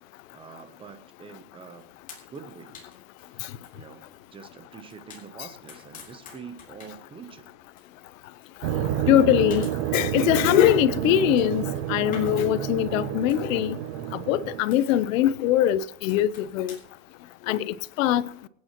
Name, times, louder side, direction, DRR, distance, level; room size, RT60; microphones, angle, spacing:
voice 1, 0.3-1.9 2.3-2.8 3.3-7.5, right 5 dB, 15° right, 0.7 m, -45 dB
sound 1, 1.8-17.0, left 5 dB, 20° left, 3.3 m, -51 dB
sound 2, 8.6-14.6, right 11 dB, 40° right, 0.8 m, -29 dB
voice 2, 9.1-9.7 9.9-11.6 11.9-13.8 14.3-16.8 17.5-18.2, left 12 dB, 80° left, 0.9 m, -22 dB
24.5 x 9.5 x 3.0 m
supercardioid pair, 175°, 39 cm